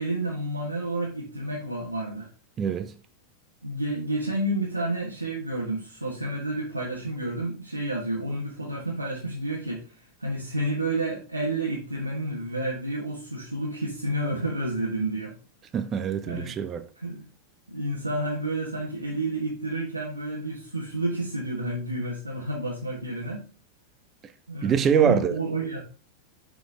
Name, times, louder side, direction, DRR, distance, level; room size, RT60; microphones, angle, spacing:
voice 1, 0.0-2.3 3.6-9.9 10.2-15.3 16.3-16.5 17.0-17.2 17.7-23.4 24.5-25.8, right 1 dB, 85° right, 1.3 m, -30 dB
voice 2, 2.6-2.9 15.7-16.9 24.6-25.4, right 8 dB, 25° right, 0.5 m, -24 dB
6.3 x 4.9 x 3.6 m
figure-of-eight pair, 90°, 0 cm